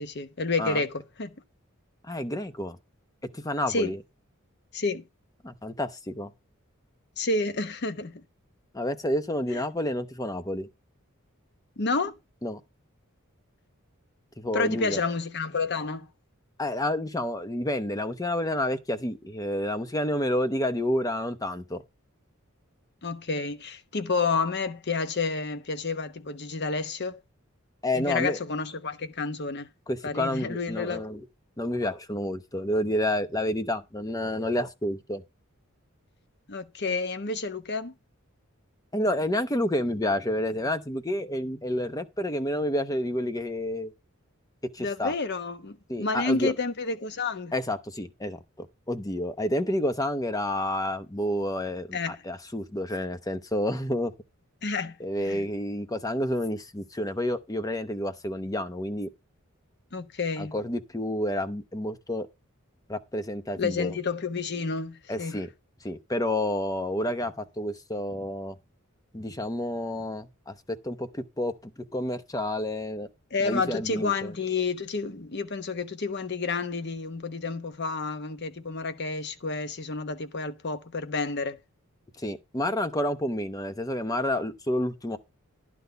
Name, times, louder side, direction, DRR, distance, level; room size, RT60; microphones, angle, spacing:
voice 1, 0.0-1.3 3.7-3.9 4.7-5.0 7.2-8.1 11.8-12.1 14.5-16.1 23.0-27.2 27.9-29.7 30.0-31.0 36.5-37.9 44.8-47.5 51.9-52.2 54.6-54.9 55.3-55.5 59.9-60.5 63.6-65.4 73.3-81.6, left 4 dB, 55° left, 1.0 m, -30 dB
voice 2, 2.1-2.8 3.3-4.0 5.4-6.3 8.7-10.7 12.4-12.6 14.4-15.0 16.6-21.8 27.8-28.4 29.9-31.3 31.6-35.2 38.9-43.9 44.7-45.1 45.9-46.5 47.5-54.1 55.0-59.1 60.4-62.3 62.9-63.9 65.1-65.5 65.8-68.6 69.1-73.1 73.4-74.3 82.2-85.2, left 1 dB, 15° left, 0.8 m, -29 dB
11.0 x 4.0 x 6.7 m
head